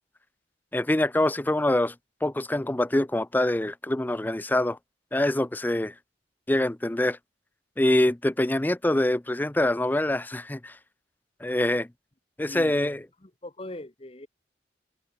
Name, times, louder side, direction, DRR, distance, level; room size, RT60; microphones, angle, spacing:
voice 1, 0.7-1.9 2.2-4.8 5.1-5.9 6.5-7.2 7.8-10.8 11.4-11.9 12.4-13.0, left 1 dB, 10° left, 0.4 m, -25 dB
voice 2, 12.4-14.3, left 1 dB, 30° left, 1.3 m, -41 dB
head